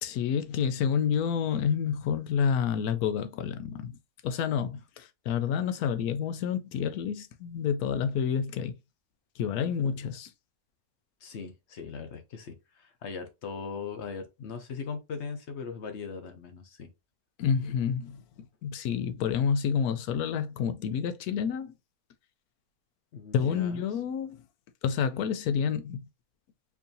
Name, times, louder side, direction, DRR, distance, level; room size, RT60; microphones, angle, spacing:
voice 1, 0.0-4.0 4.2-8.7 9.4-10.3 17.4-18.2 18.6-21.7 23.3-24.4 24.8-26.0, left 7 dB, 85° left, 1.1 m, -29 dB
voice 2, 9.6-10.0 11.2-16.9 23.1-23.9, left 5 dB, 60° left, 0.9 m, -39 dB
4.7 x 2.7 x 2.6 m
omnidirectional pair, 1.5 m